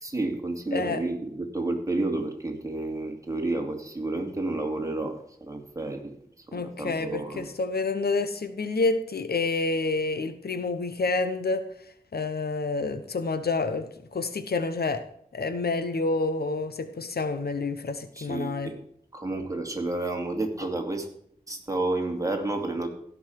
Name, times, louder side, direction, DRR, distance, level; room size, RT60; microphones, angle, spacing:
voice 1, 0.0-6.1 6.5-7.5 18.2-18.7 19.1-21.1 21.5-22.9, right 2 dB, 20° right, 2 dB, 2.6 m, -30 dB
voice 2, 0.7-1.0 6.5-11.6 12.1-15.0 15.3-18.7, left 3 dB, 90° left, 10 dB, 1.0 m, -28 dB
16.5 x 5.7 x 4.7 m, 0.70 s
wide cardioid pair, 75°, 16 cm